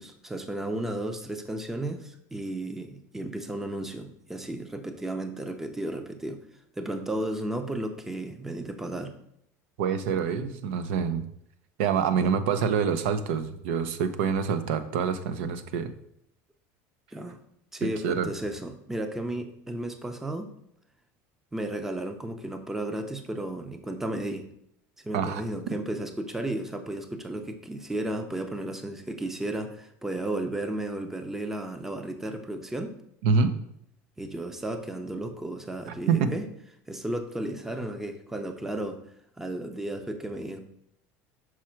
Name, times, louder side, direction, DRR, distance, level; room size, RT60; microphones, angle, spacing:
voice 1, 0.0-6.4 6.8-9.1 12.2-12.3 17.1-17.4 17.7-20.5 21.5-24.5 25.0-33.0 34.2-36.5 36.9-39.0 39.4-40.6, right 1 dB, 5° right, 7 dB, 0.5 m, -34 dB
voice 2, 9.8-11.3 11.8-15.9 17.8-18.3 25.1-25.4 33.2-33.5 36.1-36.3, right 6 dB, 85° right, 11 dB, 0.6 m, -26 dB
6.2 x 4.7 x 4.4 m, 0.73 s
cardioid pair, 160°, 7 cm